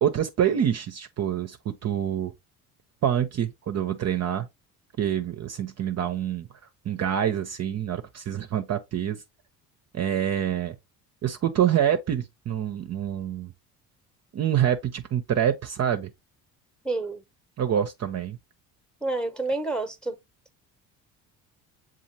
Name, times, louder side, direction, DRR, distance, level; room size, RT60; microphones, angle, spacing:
voice 1, 0.0-2.3 3.0-4.5 5.0-6.5 6.8-9.2 9.9-10.7 11.2-13.5 14.3-16.1 17.6-18.4, right 9 dB, 40° right, 0.6 m, -26 dB
voice 2, 16.8-17.2 19.0-20.2, right 2 dB, ahead, 0.9 m, -28 dB
7.1 x 2.4 x 2.8 m
hypercardioid pair, 65°, 41 cm